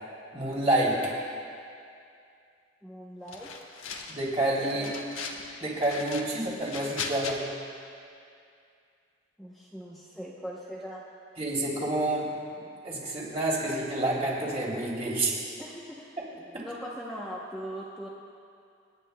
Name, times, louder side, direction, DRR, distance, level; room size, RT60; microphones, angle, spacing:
voice 1, 0.3-1.1 4.1-4.9 5.6-7.4 11.4-12.3 12.8-15.4 16.5-16.6, right 1 dB, 30° right, -5 dB, 3.0 m, -28 dB
voice 2, 2.8-3.5 4.6-5.0 9.4-11.0 15.6-18.1, equal, ahead, -6 dB, 0.8 m, -40 dB
sound 1, 3.3-4.3 4.6-5.4 5.8-7.3, left 5 dB, 85° left, 1.1 m, -38 dB
29.0 x 9.8 x 2.2 m, 2.4 s
head